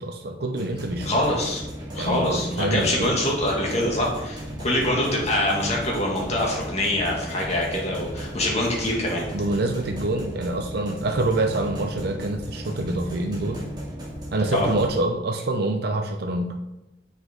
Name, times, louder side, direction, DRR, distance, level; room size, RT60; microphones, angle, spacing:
voice 1, 0.0-1.2 1.9-3.2 9.3-13.6 14.3-16.6, right 2 dB, 60° right, 3 dB, 0.6 m, -26 dB
sound 1, 0.6-14.9, equal, 25° right, 2.4 m, -35 dB
voice 2, 1.1-1.6 1.9-9.2 14.5-14.7, left 1 dB, 40° left, -3 dB, 2.2 m, -24 dB
7.4 x 6.1 x 3.9 m, 0.95 s
head